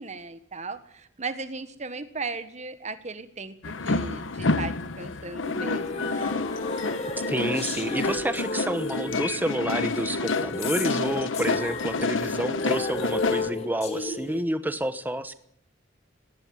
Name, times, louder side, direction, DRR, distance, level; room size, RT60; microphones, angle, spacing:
voice 1, 0.0-6.1, right 3 dB, 40° right, 10 dB, 1.5 m, -37 dB
sound 1, 3.6-13.5, left 3 dB, 90° left, 1.2 m, -29 dB
sound 2, 5.4-14.4, left 2 dB, 35° left, 3.4 m, -33 dB
voice 2, 7.3-15.3, right 1 dB, 10° right, 11 dB, 1.1 m, -29 dB
19.5 x 17.5 x 9.6 m, 0.69 s
head